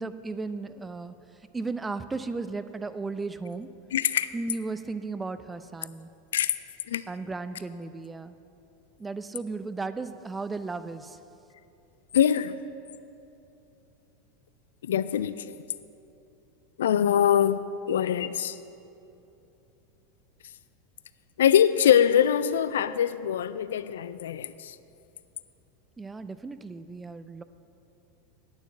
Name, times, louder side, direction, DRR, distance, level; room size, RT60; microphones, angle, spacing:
voice 1, 0.0-3.7 4.3-6.1 7.1-8.4 9.0-11.2 26.0-27.4, right 3 dB, 15° right, 12 dB, 0.5 m, -35 dB
voice 2, 3.9-4.3 6.3-6.5 6.9-7.0 12.1-12.6 14.8-15.4 16.8-17.6 17.9-18.6 21.4-24.8, left 9 dB, 80° left, 15 dB, 0.3 m, -23 dB
9.0 x 7.0 x 7.5 m, 2.8 s
hypercardioid pair, 90°, 0 cm